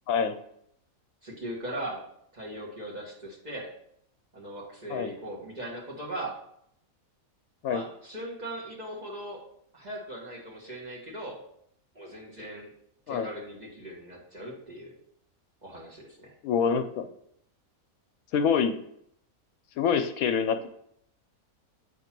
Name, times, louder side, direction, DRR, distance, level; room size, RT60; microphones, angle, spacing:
voice 1, 1.2-2.1 2.3-3.7 4.3-6.4 7.6-9.4 9.7-11.4 11.9-12.7 13.1-15.0 15.6-16.3, right 1 dB, 30° right, -4 dB, 1.5 m, -39 dB
voice 2, 16.4-17.1 18.3-18.8 19.8-20.7, left 6 dB, 75° left, 7 dB, 1.0 m, -26 dB
7.7 x 3.0 x 5.8 m, 0.72 s
omnidirectional pair, 1.5 m